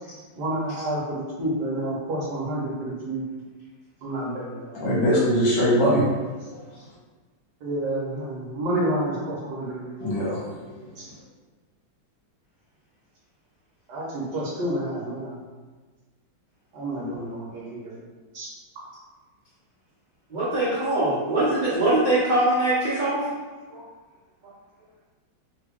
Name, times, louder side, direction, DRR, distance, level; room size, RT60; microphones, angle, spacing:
voice 1, 0.4-3.2 4.0-4.8 7.6-10.1 11.0-11.1 13.9-15.4 16.7-18.0 18.3-18.5, right 1 dB, 65° right, -4 dB, 1.2 m, -29 dB
voice 2, 4.7-6.0 6.5-6.6 10.0-10.7, equal, 70° left, -7 dB, 1.5 m, -22 dB
voice 3, 20.3-23.2 23.7-23.8, right 1 dB, 50° right, -11 dB, 0.5 m, -22 dB
3.3 x 2.2 x 3.4 m, 1.3 s
omnidirectional pair, 2.1 m